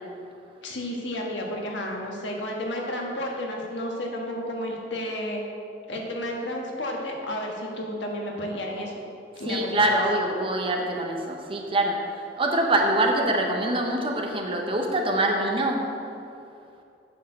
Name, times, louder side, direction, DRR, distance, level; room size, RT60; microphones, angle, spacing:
voice 1, 0.6-5.4 5.9-8.9 9.4-10.0, left 1 dB, 90° left, 0 dB, 1.4 m, -32 dB
voice 2, 9.5-12.0 12.4-15.9, right 1 dB, 30° right, 2 dB, 0.8 m, -24 dB
8.3 x 4.6 x 6.6 m, 2.5 s
head